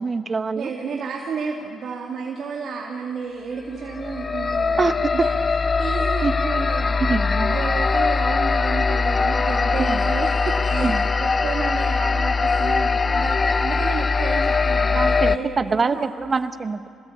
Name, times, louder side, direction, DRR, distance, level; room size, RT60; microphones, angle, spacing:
voice 1, 0.0-0.7 4.8-5.3 6.2-6.3 7.1-7.6 9.9-10.0 10.7-11.0 14.9-16.9, right 4 dB, 35° right, 11 dB, 1.1 m, -24 dB
voice 2, 0.6-4.8 5.1-5.3 5.8-7.2 7.5-16.1, right 5 dB, 60° right, -1 dB, 2.4 m, -31 dB
sound 1, 3.8-15.4, left 4 dB, 30° left, 0.7 m, -21 dB
26.5 x 19.0 x 8.6 m, 2.3 s
cardioid pair, 90°, 0 cm